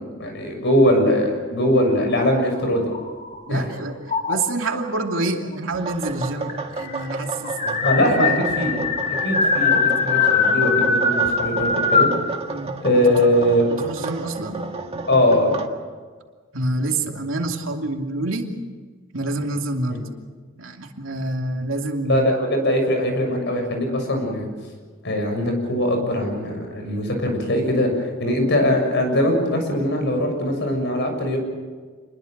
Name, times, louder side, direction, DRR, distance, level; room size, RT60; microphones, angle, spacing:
voice 1, 0.0-2.9 3.5-3.6 7.8-8.3 8.6-8.9 9.2-12.1 12.8-13.6 15.1-15.5 19.9-20.0 22.1-24.5 25.0-31.4, left 1 dB, 60° left, 4 dB, 6.8 m, -21 dB
sound 1, 2.1-3.6 4.1-4.7 5.7-5.8 6.1-6.2 6.5-12.2, left 4 dB, 40° left, 2.0 m, -22 dB
voice 2, 3.5-8.5 9.7-9.9 10.2-10.3 12.5-13.3 13.7-14.6 16.5-18.5 19.1-20.1 20.6-22.3, right 2 dB, 75° right, 3 dB, 2.7 m, -27 dB
sound 2, 5.8-15.7, right 3 dB, 30° right, 1.8 m, -32 dB
27.5 x 21.5 x 6.7 m, 1.5 s
head